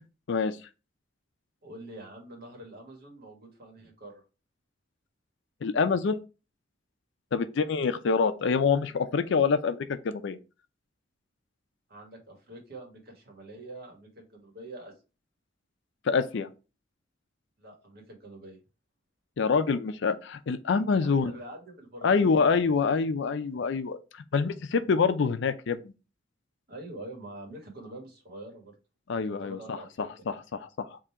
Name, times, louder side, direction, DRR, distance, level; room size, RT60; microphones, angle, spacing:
voice 1, 1.6-4.2 11.9-14.9 17.6-18.6 21.0-22.7 23.5-23.6 26.7-28.8 29.3-30.4, right 1 dB, 55° right, 1.6 m, -45 dB
voice 2, 5.6-6.2 7.3-10.4 16.1-16.5 19.4-21.3 22.0-24.0 24.3-25.9 29.1-31.0, left 5 dB, 65° left, 0.4 m, -26 dB
3.7 x 2.7 x 4.4 m
head